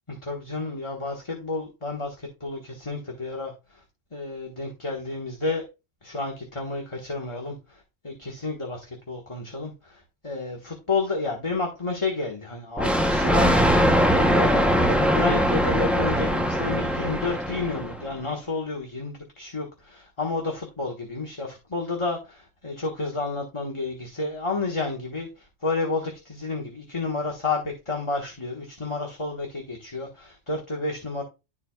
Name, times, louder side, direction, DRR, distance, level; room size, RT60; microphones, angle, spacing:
voice 1, 0.2-3.5 4.1-5.6 6.0-7.8 8.0-13.6 14.1-25.3 25.6-31.2, left 3 dB, 25° left, 1.4 m, -31 dB
Thunder, 12.8-18.1, equal, ahead, 0.5 m, -21 dB
12.5 x 4.5 x 2.3 m
omnidirectional pair, 1.3 m